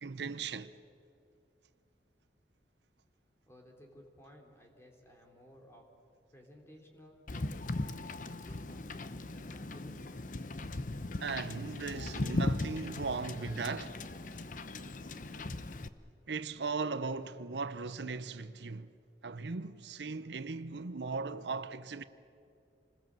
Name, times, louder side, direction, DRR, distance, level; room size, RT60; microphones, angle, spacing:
voice 1, 0.0-0.7 11.2-14.0 16.3-18.9 19.2-22.0, right 4 dB, 80° right, 0.7 m, -38 dB
voice 2, 3.5-5.9 6.3-10.0, equal, 15° left, 3.5 m, -58 dB
Wind / Boat Water vehicle, 7.3-15.9, left 2 dB, 45° left, 0.8 m, -38 dB
27.5 x 20.5 x 7.7 m
head